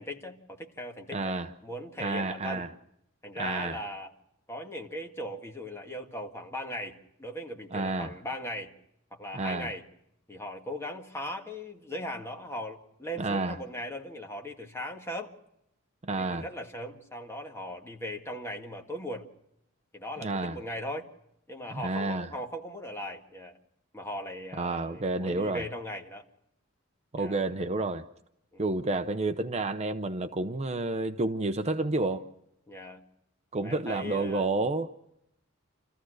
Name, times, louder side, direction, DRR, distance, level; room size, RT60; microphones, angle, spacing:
voice 1, 0.0-2.6 3.2-4.1 4.5-8.7 9.1-9.9 10.3-15.3 16.1-19.3 19.9-21.1 21.5-23.5 23.9-26.2 27.2-27.4 28.5-28.7 32.7-33.0 33.6-34.5, left 1 dB, 15° left, 1.8 m, -38 dB
voice 2, 1.1-1.5 2.0-2.7 3.4-3.8 7.7-8.1 9.3-9.7 13.2-13.6 16.0-16.4 20.2-20.6 21.7-22.3 24.6-25.6 27.1-28.0 28.6-32.2 33.5-34.9, right 2 dB, 30° right, 0.7 m, -30 dB
28.0 x 14.5 x 6.4 m
head